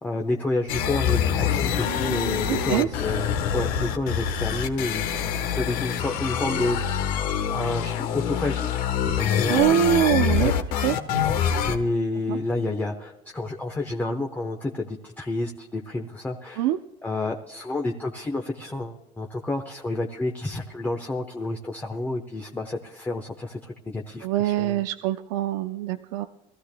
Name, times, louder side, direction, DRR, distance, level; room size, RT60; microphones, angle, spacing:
voice 1, 0.0-3.3 3.5-5.1 5.6-6.8 7.5-8.7 9.2-9.6 10.4-10.5 11.7-16.7 17.0-24.8, left 2 dB, 10° left, 2 dB, 0.9 m, -29 dB
sound 1, 0.7-11.8, left 8 dB, 65° left, 1.2 m, -25 dB
voice 2, 2.5-2.9 9.5-10.5 10.8-10.9 12.3-12.4 16.6-16.8 24.2-26.3, right 12 dB, 90° right, 8 dB, 0.6 m, -23 dB
24.0 x 15.0 x 2.2 m, 0.90 s
cardioid pair, 150°, 16 cm